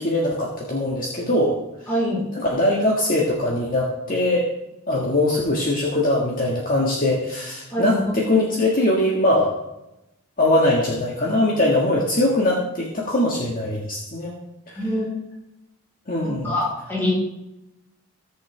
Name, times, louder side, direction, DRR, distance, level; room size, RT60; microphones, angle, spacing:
voice 1, 0.0-1.6 2.3-4.5 4.9-9.6 10.4-14.3 14.7-14.8 16.1-16.6, left 1 dB, 40° left, -3 dB, 1.9 m, -21 dB
voice 2, 1.9-2.3 7.7-8.0 14.8-15.1 16.2-17.1, left 1 dB, 10° left, -6 dB, 4.5 m, -24 dB
19.0 x 6.8 x 3.5 m, 0.89 s
head